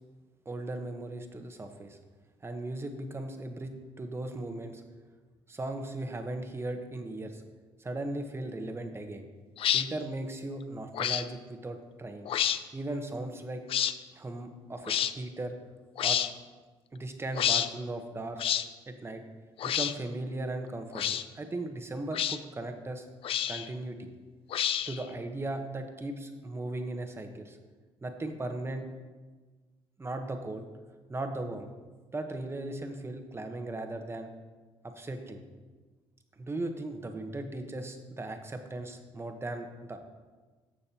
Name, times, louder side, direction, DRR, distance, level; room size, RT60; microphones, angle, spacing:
voice 1, 0.4-2.0 2.4-4.8 5.5-7.4 7.8-9.3 9.7-12.3 12.7-13.6 14.1-15.6 16.0-16.2 16.9-18.4 18.9-19.2 19.6-23.0 23.5-24.1 24.9-27.6 28.0-28.9 30.0-30.7 31.1-31.7 32.1-34.3 34.8-35.4 36.4-40.0, right 2 dB, 25° right, 6 dB, 1.1 m, -37 dB
sound 1, 9.6-9.9 10.9-11.3 12.3-12.6 13.7-13.9 14.9-15.1 16.0-16.3 17.3-17.7 18.4-18.7 19.6-19.9 20.9-21.2 22.1-22.4 23.2-23.7 24.5-25.0, left 10 dB, 60° left, 0.4 m, -28 dB
14.5 x 6.4 x 2.9 m, 1.3 s
cardioid pair, 85°, 11 cm